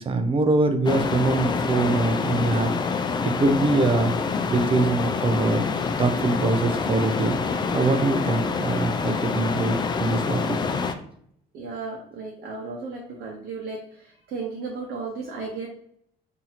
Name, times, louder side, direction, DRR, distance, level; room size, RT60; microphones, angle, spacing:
voice 1, 0.0-2.7 3.2-4.1 4.5-5.7 6.0-7.4 7.7-10.6, right 3 dB, 30° right, 8 dB, 0.5 m, -23 dB
sound 1, 0.8-10.9, left 4 dB, 25° left, 0.3 m, -26 dB
voice 2, 10.2-10.6 11.5-15.7, right 4 dB, 70° right, -1 dB, 0.8 m, -35 dB
2.9 x 2.7 x 4.0 m, 0.68 s
cardioid pair, 110°, 17 cm